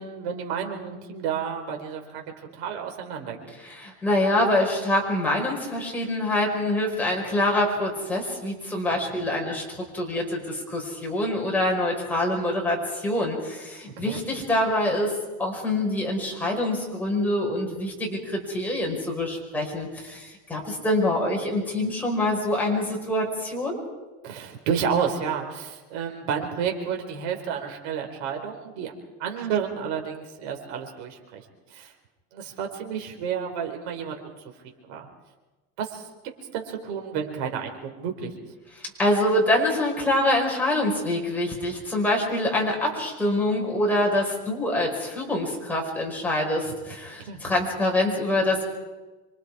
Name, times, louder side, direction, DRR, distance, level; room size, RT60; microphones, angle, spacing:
voice 1, 0.0-3.4 14.0-14.2 24.2-28.9 29.2-31.9 32.3-34.5 34.8-35.1 35.8-38.3 47.2-47.4, right 7 dB, 70° right, 3 dB, 4.2 m, -31 dB
voice 2, 3.6-15.1 15.4-23.8 38.8-48.6, left 1 dB, 5° left, -2 dB, 5.4 m, -25 dB
27.0 x 24.5 x 4.9 m, 1.2 s
cardioid pair, 150°, 33 cm